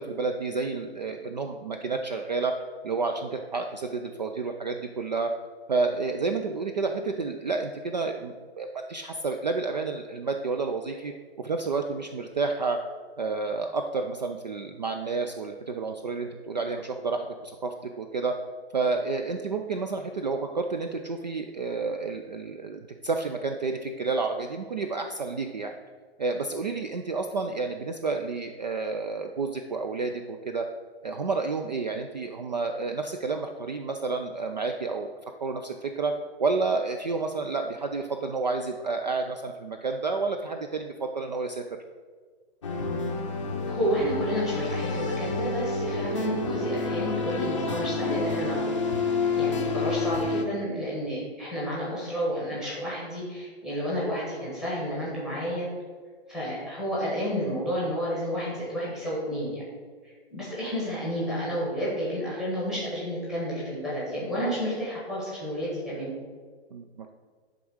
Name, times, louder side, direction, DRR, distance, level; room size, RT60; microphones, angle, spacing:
voice 1, 0.0-2.5 2.8-5.3 5.7-11.1 11.4-12.8 13.2-18.3 18.7-25.7 26.2-30.7 31.0-35.1 35.4-36.1 36.4-41.6 66.7-67.1, right 4 dB, 45° right, 5 dB, 0.4 m, -30 dB
sound 1, 42.6-50.4, left 3 dB, 30° left, 0.6 m, -29 dB
voice 2, 43.7-48.7 49.4-55.7 56.3-59.6 60.0-66.1, equal, ahead, -7 dB, 1.0 m, -31 dB
10.5 x 3.6 x 6.2 m, 1.5 s
hypercardioid pair, 175°, 33 cm